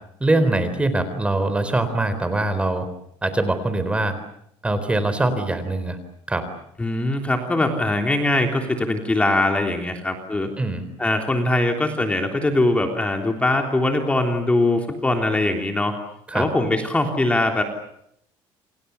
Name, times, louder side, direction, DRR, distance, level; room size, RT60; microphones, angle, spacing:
voice 1, 0.2-2.9 3.2-4.2 4.6-6.0 6.3-6.5 10.6-10.9 16.3-16.5, right 2 dB, 10° right, 11 dB, 3.9 m, -22 dB
voice 2, 6.8-10.5 11.0-16.0 16.3-17.6, left 2 dB, 10° left, 4 dB, 3.5 m, -21 dB
29.0 x 26.5 x 7.1 m, 0.72 s
cardioid pair, 140°, 10 cm